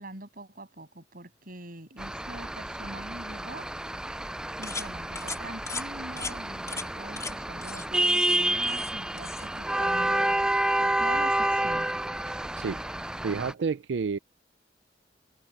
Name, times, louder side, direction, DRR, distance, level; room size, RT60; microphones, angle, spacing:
voice 1, 0.0-3.7 4.6-10.4 10.8-11.9, right 2 dB, 55° right, 7.3 m, -43 dB
sound 1, 2.0-13.5, right 1 dB, 5° right, 0.3 m, -29 dB
sound 2, 4.6-4.9 5.2-5.4 5.7-5.9 6.2-6.3 6.7-6.9 7.2-7.3 7.6-7.9 8.1-8.9 9.2-9.5, left 4 dB, 15° left, 4.6 m, -37 dB
voice 2, 12.3-12.8 13.2-14.2, right 5 dB, 75° right, 0.4 m, -30 dB
head